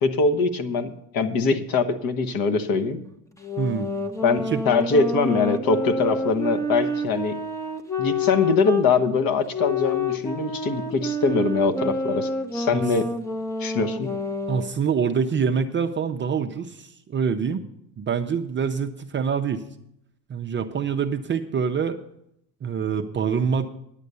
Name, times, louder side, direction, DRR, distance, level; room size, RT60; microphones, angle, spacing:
voice 1, 0.0-3.0 4.2-7.4 8.0-13.1 13.6-14.1, left 4 dB, 45° left, 7 dB, 1.2 m, -23 dB
sound 1, 3.4-8.9 9.5-14.7, left 2 dB, 5° left, 0.7 m, -28 dB
voice 2, 3.6-3.9 4.5-4.6 12.7-12.8 14.5-17.6 18.0-19.6 20.3-22.0 22.6-23.7, right 6 dB, 25° right, 5 dB, 0.5 m, -25 dB
10.5 x 8.2 x 6.7 m, 0.77 s
supercardioid pair, 105°, 48 cm